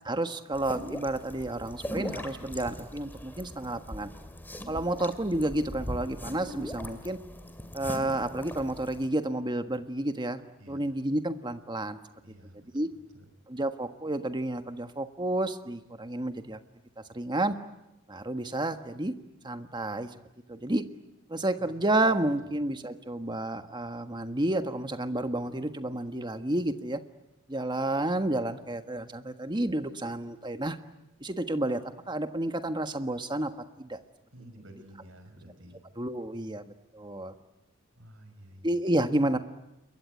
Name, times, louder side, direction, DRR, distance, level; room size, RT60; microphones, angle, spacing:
voice 1, 0.0-4.1 4.7-7.2 7.7-10.4 10.7-12.0 12.7-12.9 13.5-16.6 17.1-17.5 18.1-19.1 19.4-20.1 20.5-20.8 21.3-27.0 27.5-30.8 31.2-33.5 33.8-34.0 36.0-37.3 38.6-39.4, right 1 dB, 20° right, 8 dB, 1.5 m, -30 dB
sound 1, 0.5-9.1, equal, 10° left, 2.4 m, -40 dB
voice 2, 12.2-12.7 13.1-13.2 21.6-21.8 34.3-35.8 38.0-38.6, right 1 dB, 65° right, 8 dB, 5.6 m, -51 dB
28.0 x 22.5 x 9.3 m, 0.93 s
head